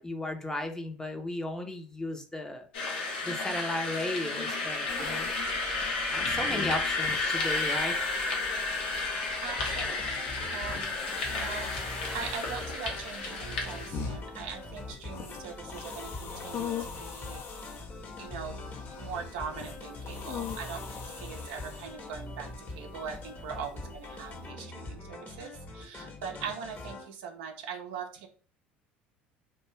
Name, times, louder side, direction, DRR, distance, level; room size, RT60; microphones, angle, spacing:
voice 1, 0.0-5.8 6.1-8.0, left 1 dB, 10° left, 5 dB, 0.7 m, -36 dB
sound 1, 2.7-13.9, left 3 dB, 85° left, 0.7 m, -32 dB
sound 2, 4.9-24.5, left 6 dB, 50° left, 0.6 m, -43 dB
voice 2, 9.4-11.0 11.2-17.7 18.2-18.6 18.9-28.3, right 6 dB, 75° right, 4 dB, 0.5 m, -41 dB
sound 3, 9.6-27.0, left 2 dB, 35° left, 1.0 m, -43 dB
2.5 x 2.2 x 3.1 m, 0.39 s
hypercardioid pair, 70°, 5 cm